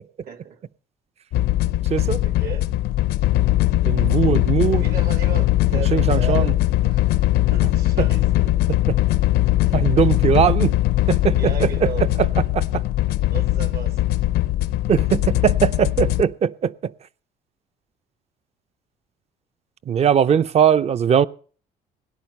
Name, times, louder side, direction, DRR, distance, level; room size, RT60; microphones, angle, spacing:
voice 1, 0.2-0.6 1.9-2.7 4.5-6.6 6.8-8.5 9.5-9.9 11.4-12.1 13.3-14.0, right 8 dB, 65° right, 1.8 m, -35 dB
sound 1, 1.3-16.2, left 15 dB, 75° left, 0.6 m, -20 dB
voice 2, 1.9-2.2 3.8-4.8 5.9-6.5 8.9-9.0 9.7-10.7 11.1-11.7 12.5-12.8 14.9-16.7 19.9-21.3, right 8 dB, 40° right, 0.6 m, -20 dB
18.0 x 10.5 x 5.4 m
cardioid pair, 110°, 17 cm